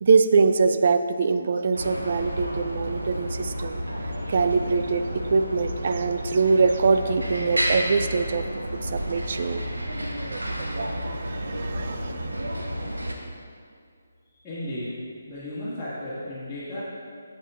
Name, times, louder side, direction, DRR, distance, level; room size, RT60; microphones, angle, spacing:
voice 1, 0.0-3.8 4.3-9.8 10.3-12.5, right 4 dB, 45° right, 9 dB, 0.5 m, -24 dB
sound 1, 1.7-13.1, equal, 80° right, 1.3 m, -31 dB
voice 2, 14.4-15.0 15.3-16.8, left 1 dB, 10° left, -17 dB, 2.5 m, -34 dB
8.9 x 8.1 x 4.0 m, 2.2 s
figure-of-eight pair, 145°, 0 cm